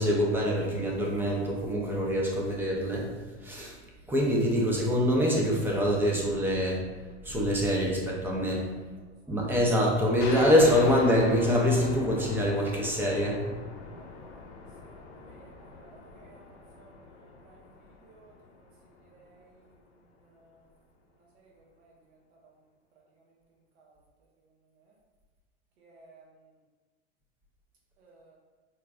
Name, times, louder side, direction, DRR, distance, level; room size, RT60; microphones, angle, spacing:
voice 1, 0.0-3.1 3.4-3.8 4.1-6.8 7.2-8.7 9.3-13.4, equal, 5° right, -2 dB, 0.4 m, -25 dB
voice 2, 8.9-9.4 14.0-14.4 14.9-15.9 16.1-17.6 18.0-18.3 19.0-19.6 20.2-20.6 21.3-21.5 21.8-21.9 22.4-22.5 23.8-23.9 25.8-26.2 28.0-28.4, right 3 dB, 65° right, -2 dB, 0.7 m, -58 dB
sound 1, 10.2-19.4, left 3 dB, 60° left, 0.8 m, -42 dB
4.3 x 2.2 x 2.4 m, 1.3 s
hypercardioid pair, 115°, 36 cm